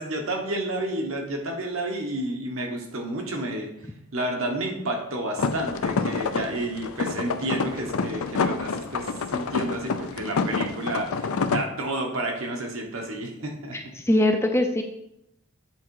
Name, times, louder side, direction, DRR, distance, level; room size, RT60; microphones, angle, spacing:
voice 1, 0.0-3.7 4.1-13.8, right 1 dB, 70° right, 2 dB, 1.2 m, -30 dB
sound 1, 5.4-11.6, left 4 dB, 80° left, 0.5 m, -28 dB
voice 2, 13.7-14.8, left 1 dB, 10° left, 5 dB, 0.4 m, -22 dB
7.8 x 3.7 x 4.7 m, 0.81 s
head